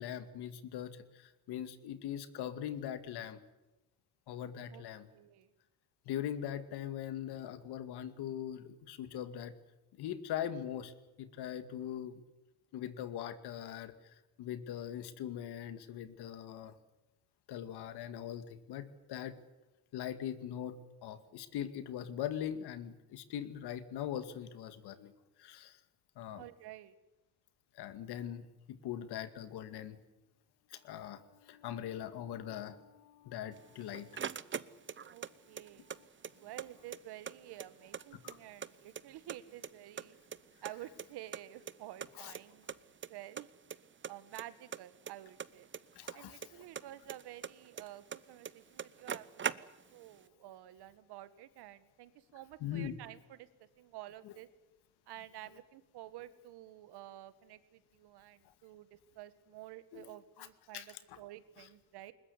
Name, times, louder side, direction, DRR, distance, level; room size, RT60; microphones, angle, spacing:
voice 1, 0.0-3.4 4.3-5.1 6.1-9.5 10.0-12.1 12.7-16.7 17.5-19.3 19.9-25.1 25.4-25.8 26.2-26.4 27.7-30.0 30.7-34.4 35.8-36.1 38.2-38.4 42.2-42.3 46.0-46.4 52.6-52.9 54.2-54.3 59.9-60.0 60.4-60.5 60.7-61.2, left 10 dB, 75° left, 11 dB, 2.3 m, -41 dB
voice 2, 5.1-5.5 26.3-26.9 35.1-35.9 36.4-40.2 40.6-42.7 43.0-43.5 44.1-45.7 46.1-53.5 53.8-54.5 55.1-62.1, right 14 dB, 75° right, 14 dB, 1.8 m, -51 dB
sound 1, 33.6-35.3 35.6-36.7 36.9-37.0 37.3-38.7 38.9-39.7 40.0-41.4 41.7-41.8 42.0-42.1 42.3-42.4 42.7-43.1 43.4-43.8 44.0-46.5 46.7-48.2 48.4-48.5 48.8-50.0, right 7 dB, 30° right, 0.9 m, -41 dB
21.0 x 20.5 x 9.8 m, 0.99 s
cardioid pair, 90°, 40 cm